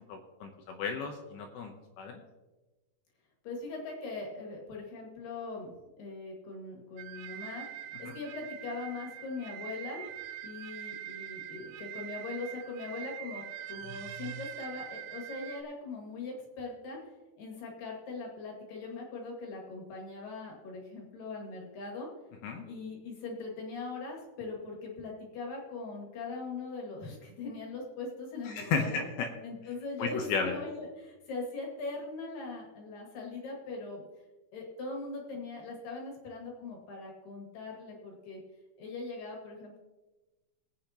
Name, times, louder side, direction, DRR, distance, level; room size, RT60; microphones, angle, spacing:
voice 1, 0.0-2.2 8.0-8.1 22.4-22.6 28.5-29.3 30.0-30.6, left 5 dB, 75° left, 3 dB, 2.6 m, -34 dB
voice 2, 3.4-7.7 8.0-10.0 10.4-17.0 17.4-22.1 22.6-29.0 29.4-34.0 34.5-38.4 38.8-39.8, left 3 dB, 55° left, 0 dB, 3.3 m, -41 dB
sound 1, 7.0-15.6, right 11 dB, 80° right, 2.6 m, -43 dB
21.0 x 8.5 x 2.9 m, 1.1 s
omnidirectional pair, 5.1 m